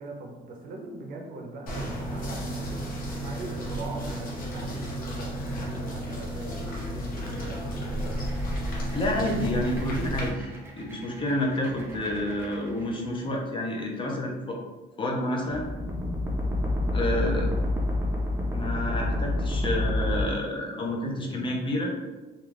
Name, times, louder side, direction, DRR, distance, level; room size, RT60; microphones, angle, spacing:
voice 1, 0.0-8.1, right 3 dB, 60° right, 1 dB, 0.6 m, -41 dB
sound 1, 1.7-10.3, equal, 60° left, 0.8 m, -32 dB
sound 2, 8.2-13.2 15.5-20.2, left 1 dB, 15° right, 0.6 m, -30 dB
voice 2, 8.9-10.5 10.8-14.6 15.0-15.7 16.9-17.5 18.5-21.9, left 1 dB, 30° left, 0 dB, 0.5 m, -29 dB
2.3 x 2.3 x 3.2 m, 1.2 s
cardioid pair, 110°, 17 cm